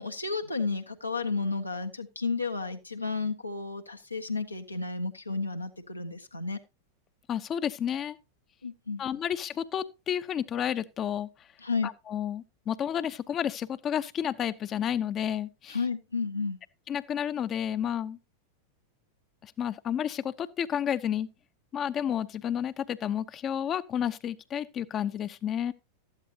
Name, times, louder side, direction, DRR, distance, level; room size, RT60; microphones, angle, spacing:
voice 1, 0.0-6.6 8.6-9.0 11.6-11.9 15.7-16.6, left 4 dB, 85° left, 1.4 m, -32 dB
voice 2, 7.3-8.2 9.0-11.3 11.8-15.8 16.9-18.2 19.4-21.3 21.7-25.7, left 9 dB, 30° left, 0.8 m, -31 dB
13.5 x 11.5 x 2.8 m
figure-of-eight pair, 90°, 0 cm